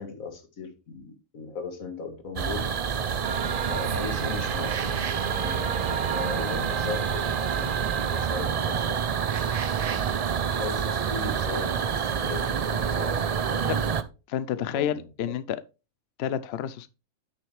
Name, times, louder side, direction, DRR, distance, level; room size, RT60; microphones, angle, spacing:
voice 1, 0.0-2.7 3.7-4.8 5.3-9.0 10.5-13.2 13.5-13.8 14.7-15.3, left 4 dB, 80° left, 2.0 m, -38 dB
sound 1, 2.4-14.0, right 7 dB, 70° right, 0.3 m, -27 dB
sound 2, 3.2-8.4, right 8 dB, 50° right, 0.8 m, -35 dB
voice 2, 14.3-15.6 16.2-16.9, left 9 dB, 60° left, 0.7 m, -29 dB
8.9 x 6.9 x 3.2 m
omnidirectional pair, 1.4 m